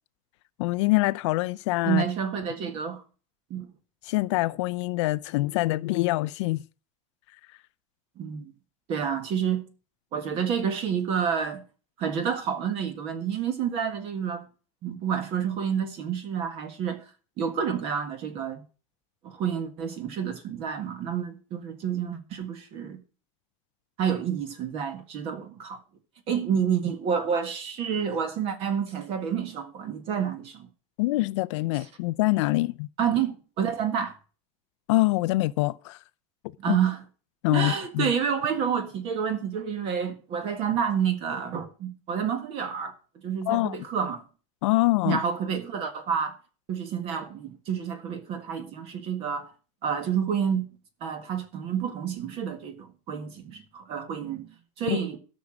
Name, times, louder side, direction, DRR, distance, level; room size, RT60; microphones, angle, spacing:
voice 1, 0.6-2.0 4.1-6.6 31.0-32.9 34.9-36.0 36.7-36.8 37.4-38.1 43.5-43.7 44.6-45.2 54.9-55.0, left 20 dB, 60° left, 0.5 m, -25 dB
voice 2, 1.8-3.0 3.5-3.7 8.2-8.5 8.9-9.6 10.1-11.6 12.0-14.5 14.8-17.0 17.4-18.6 19.2-23.0 24.0-25.8 26.3-30.7 33.0-34.1 36.6-37.0 37.5-42.9 43.2-44.2 45.0-46.4 46.7-49.5 49.8-50.7 51.0-54.5 54.8-55.2, right 7 dB, 35° right, 1.7 m, -29 dB
13.0 x 6.3 x 6.3 m
supercardioid pair, 170°, 17 cm